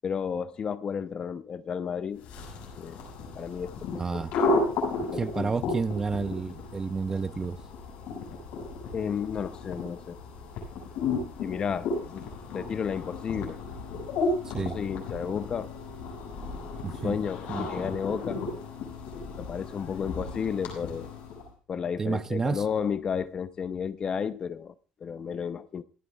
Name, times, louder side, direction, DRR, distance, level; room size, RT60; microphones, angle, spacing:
voice 1, 0.0-2.3 2.8-3.0 3.3-4.2 5.1-5.6 8.9-10.2 11.4-12.3 12.5-13.6 14.6-15.7 17.0-18.4 19.4-21.1 21.7-24.7 25.0-25.8, left 7 dB, 35° left, 0.7 m, -32 dB
sound 1, 2.2-21.5, left 3 dB, 70° left, 6.6 m, -34 dB
voice 2, 4.0-4.3 5.0-7.6 14.4-14.8 16.8-17.2 17.5-17.9 22.0-22.6, right 4 dB, 20° right, 0.6 m, -31 dB
27.0 x 9.2 x 2.4 m
cardioid pair, 130°, 2 cm